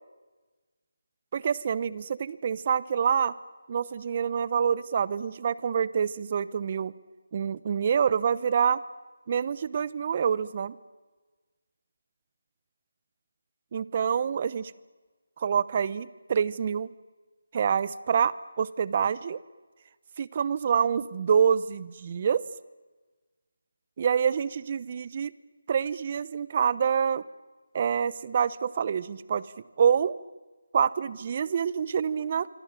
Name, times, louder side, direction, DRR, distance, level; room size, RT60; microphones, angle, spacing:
voice 1, 1.3-3.4 3.7-6.9 7.3-8.8 9.3-10.8 13.7-14.7 15.4-16.9 17.5-19.4 20.2-22.4 24.0-25.3 25.7-27.2 27.7-29.5 29.8-30.2 30.7-32.5, right 7 dB, 35° right, 18 dB, 0.9 m, -26 dB
25.5 x 25.5 x 9.0 m, 1.3 s
figure-of-eight pair, 165°, 0 cm